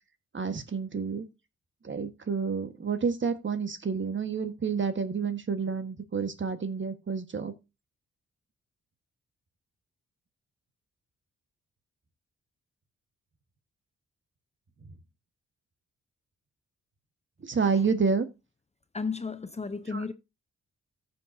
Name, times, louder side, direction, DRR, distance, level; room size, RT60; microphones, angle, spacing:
voice 1, 0.3-1.2 1.8-7.5 17.4-18.3 19.9-20.0, right 5 dB, 40° right, 1.5 m, -29 dB
voice 2, 18.9-20.1, left 4 dB, 20° left, 0.7 m, -33 dB
14.5 x 6.7 x 2.7 m
cardioid pair, 65°, 30 cm